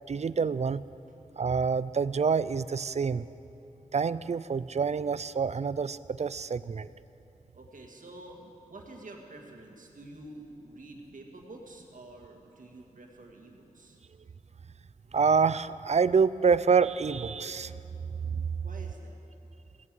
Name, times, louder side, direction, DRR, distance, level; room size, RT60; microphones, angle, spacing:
voice 1, 0.1-0.8 1.4-3.3 3.9-6.9 15.1-17.7 18.3-18.4, right 5 dB, 55° right, 16 dB, 0.4 m, -27 dB
voice 2, 7.5-14.0 18.6-19.2, right 2 dB, 80° right, 1 dB, 1.9 m, -48 dB
16.5 x 11.0 x 7.6 m, 3.0 s
wide cardioid pair, 75°, 13 cm